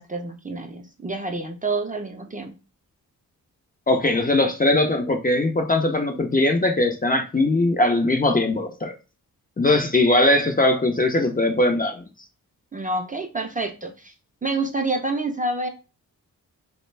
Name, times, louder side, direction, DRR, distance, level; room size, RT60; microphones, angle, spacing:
voice 1, 0.0-2.5 12.7-14.1 14.4-15.7, right 2 dB, 20° right, 0.5 m, -28 dB
voice 2, 3.9-8.9 9.6-12.0, left 2 dB, 25° left, 0.5 m, -20 dB
2.2 x 2.1 x 3.2 m
supercardioid pair, 45°, 38 cm